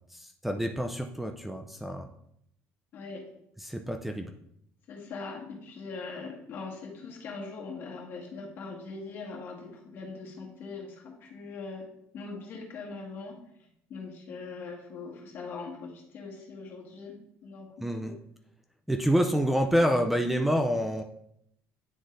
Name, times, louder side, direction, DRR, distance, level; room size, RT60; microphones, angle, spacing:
voice 1, 0.1-2.1 3.6-4.3 17.8-18.2 18.9-21.0, equal, 5° right, 5 dB, 0.4 m, -27 dB
voice 2, 2.9-3.3 4.9-18.2, left 4 dB, 55° left, -1 dB, 1.7 m, -41 dB
9.8 x 3.9 x 2.5 m, 0.75 s
cardioid pair, 120°, 5 cm